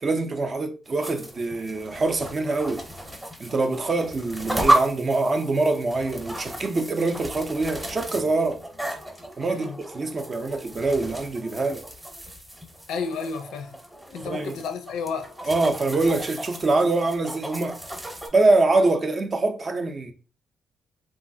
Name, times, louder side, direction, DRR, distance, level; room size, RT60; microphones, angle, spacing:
voice 1, 0.0-2.8 3.4-8.6 9.4-11.9 14.3-14.6 15.5-17.8 18.3-20.1, right 3 dB, 40° right, 0.5 m, -24 dB
sound 1, 0.9-18.3, right 1 dB, 10° right, 0.8 m, -33 dB
voice 2, 9.4-9.8 12.9-13.8 14.1-15.3, left 5 dB, 85° left, 0.5 m, -32 dB
3.0 x 2.3 x 2.6 m
cardioid pair, 90°, 0 cm